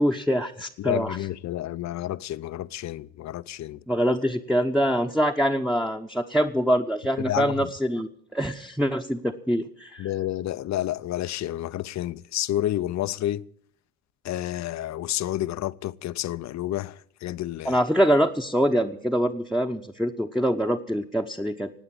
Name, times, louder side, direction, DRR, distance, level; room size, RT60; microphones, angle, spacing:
voice 1, 0.0-1.2 3.9-10.1 17.6-21.7, equal, ahead, 1.0 m, -24 dB
voice 2, 0.8-3.8 7.3-7.5 10.0-13.4 14.2-16.9 17.2-17.8, left 13 dB, 55° left, 0.7 m, -30 dB
17.5 x 9.0 x 8.7 m
supercardioid pair, 65°, 33 cm